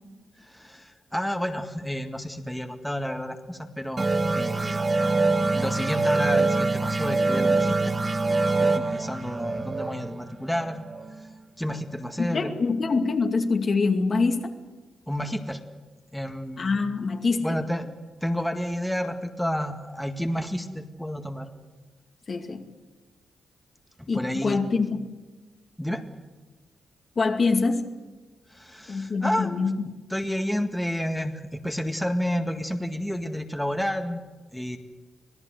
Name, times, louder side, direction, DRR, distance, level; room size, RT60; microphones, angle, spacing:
voice 1, 0.4-4.1 4.3-4.9 5.5-7.9 8.5-10.8 11.6-12.6 15.1-15.6 16.1-16.7 17.4-17.9 18.2-21.5 24.0-24.6 25.8-26.0 28.5-29.5 30.1-34.2 34.5-34.8, equal, 5° left, 5 dB, 1.9 m, -30 dB
sound 1, 4.0-11.2, right 3 dB, 35° right, 1.2 m, -24 dB
voice 2, 12.2-14.5 16.6-17.6 22.3-22.7 24.1-25.1 27.2-27.9 28.9-30.0, left 4 dB, 50° left, 4 dB, 2.4 m, -25 dB
26.0 x 17.0 x 8.0 m, 1.2 s
cardioid pair, 65°, 0 cm